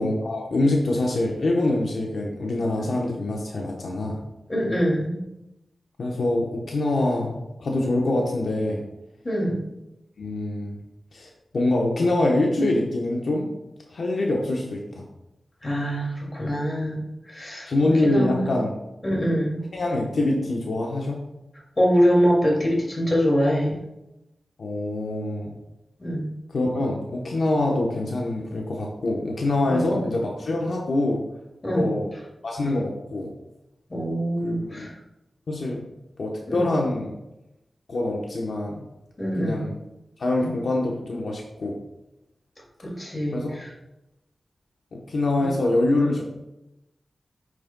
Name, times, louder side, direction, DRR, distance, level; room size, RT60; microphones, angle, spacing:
voice 1, 0.0-4.2 6.0-8.8 10.2-10.8 11.1-13.5 13.9-15.0 17.7-18.7 19.7-21.2 24.6-25.5 26.5-31.2 31.7-32.1 32.4-33.3 34.4-34.9 35.5-35.8 36.2-37.1 37.9-38.8 39.4-39.8 40.2-41.8 43.3-43.5 44.9-46.2, left 2 dB, 80° left, -1 dB, 1.0 m, -25 dB
voice 2, 4.5-5.2 9.2-9.6 15.6-17.0 17.3-17.7 18.0-18.5 19.0-19.6 21.8-23.8 26.0-26.3 29.6-30.0 31.6-31.9 33.9-34.9 36.5-36.7 39.2-39.7 42.8-43.7 45.4-45.5, equal, 30° left, -2 dB, 2.4 m, -24 dB
8.9 x 6.4 x 2.3 m, 0.93 s
wide cardioid pair, 105°, 0 cm